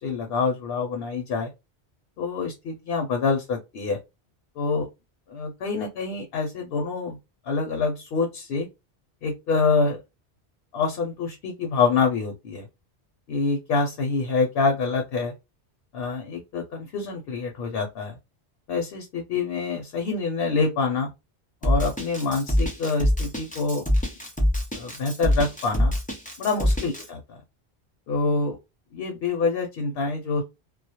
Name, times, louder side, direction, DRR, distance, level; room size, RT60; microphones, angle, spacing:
voice 1, 0.0-1.5 2.2-4.0 4.6-4.9 5.3-7.2 7.4-8.7 9.2-10.0 10.7-12.7 13.3-15.3 15.9-18.2 18.7-21.1 21.6-23.8 24.7-25.9 26.4-27.2 28.1-28.6 28.9-30.4, left 4 dB, 70° left, 0.8 m, -26 dB
Drum kit, 21.6-27.0, equal, 15° left, 0.3 m, -24 dB
2.2 x 2.0 x 2.8 m
omnidirectional pair, 1.1 m